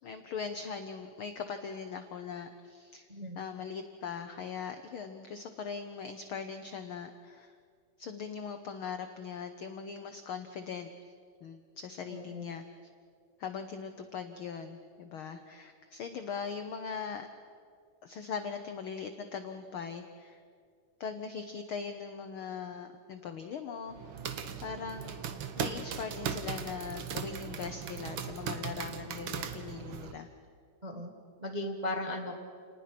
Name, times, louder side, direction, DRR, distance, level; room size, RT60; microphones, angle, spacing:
voice 1, 0.0-3.1 3.4-7.5 8.0-10.9 11.4-12.6 13.4-17.3 18.0-20.4 21.0-24.0 24.6-25.2 25.6-30.3, left 6 dB, 75° left, 8 dB, 1.2 m, -40 dB
voice 2, 12.1-12.5 30.8-31.1 31.4-32.4, left 1 dB, 30° right, 1 dB, 0.7 m, -37 dB
sound 1, 23.9-30.1, right 7 dB, 60° right, 1.4 m, -38 dB
28.5 x 19.5 x 6.0 m, 2.2 s
omnidirectional pair, 3.5 m